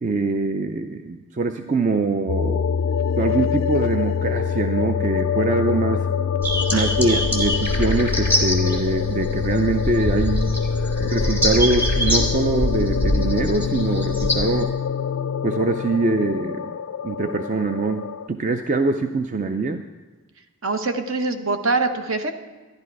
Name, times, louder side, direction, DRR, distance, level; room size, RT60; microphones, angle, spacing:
voice 1, 0.0-2.8 3.2-6.1 6.7-10.5 11.0-14.7 15.4-16.7 17.0-19.8, right 3 dB, 35° right, 7 dB, 0.4 m, -23 dB
sound 1, 2.3-18.3, left 7 dB, 70° left, 0.3 m, -25 dB
sound 2, 6.4-14.6, equal, 10° right, 1.5 m, -24 dB
voice 2, 6.7-7.2 20.6-22.3, right 3 dB, 65° right, 7 dB, 0.9 m, -24 dB
12.5 x 11.5 x 4.6 m, 1.3 s
head